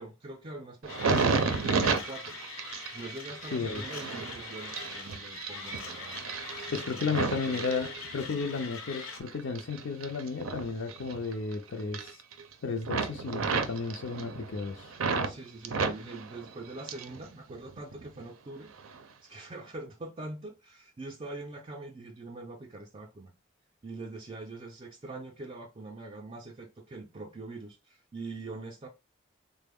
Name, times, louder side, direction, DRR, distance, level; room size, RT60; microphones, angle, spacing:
voice 1, 0.0-2.4 2.9-6.2 6.6-7.7 15.2-18.7 19.2-23.3 23.8-28.9, right 2 dB, 30° right, 0.4 m, -43 dB
sound 1, 0.8-8.5 8.9-11.5 11.8-12.5 12.8-15.3 15.6-17.2 17.5-18.2 18.8-19.0, right 4 dB, 90° right, 0.5 m, -33 dB
Mechanisms, 0.9-9.2, left 4 dB, 85° left, 0.8 m, -43 dB
voice 2, 3.5-3.9 6.7-12.2 12.6-15.0, left 4 dB, 65° left, 0.4 m, -33 dB
3.6 x 2.1 x 3.5 m
head